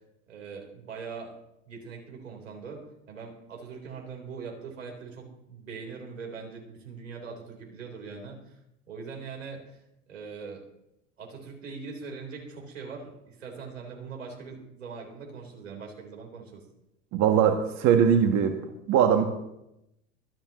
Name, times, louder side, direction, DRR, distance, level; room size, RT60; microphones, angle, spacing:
voice 1, 0.3-1.3 1.7-8.6 8.9-9.8 10.1-10.6 11.2-16.6, right 5 dB, 90° right, 0 dB, 3.9 m, -41 dB
voice 2, 17.1-18.6 18.9-19.2, right 8 dB, 50° right, 5 dB, 1.4 m, -21 dB
25.0 x 8.9 x 3.0 m, 0.85 s
hypercardioid pair, 85°, 37 cm